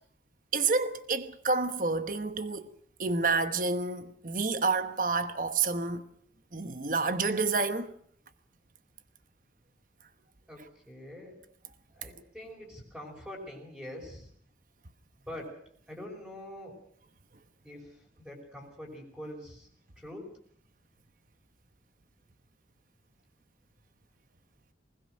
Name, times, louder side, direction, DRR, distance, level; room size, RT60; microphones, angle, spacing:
voice 1, 0.5-2.7 3.0-6.0 6.5-7.9, right 4 dB, 45° right, 1.1 m, -29 dB
voice 2, 10.5-11.4 11.9-14.3 15.2-15.6 15.9-16.8 17.6-19.7 20.0-20.2, left 1 dB, 5° right, 5.3 m, -44 dB
20.5 x 20.5 x 6.4 m
head